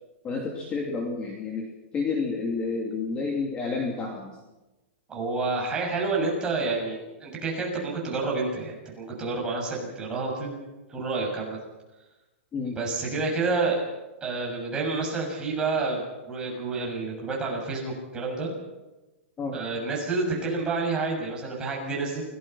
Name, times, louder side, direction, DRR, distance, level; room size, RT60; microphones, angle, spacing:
voice 1, 0.2-1.7 1.9-4.3 12.5-12.8 19.4-19.6, left 4 dB, 15° left, 0 dB, 2.8 m, -30 dB
voice 2, 5.1-10.6 10.9-11.6 12.6-13.8 14.2-18.5 19.5-22.2, right 3 dB, 10° right, -2 dB, 7.0 m, -29 dB
28.0 x 18.5 x 5.7 m, 1.1 s
hypercardioid pair, 160°, 7 cm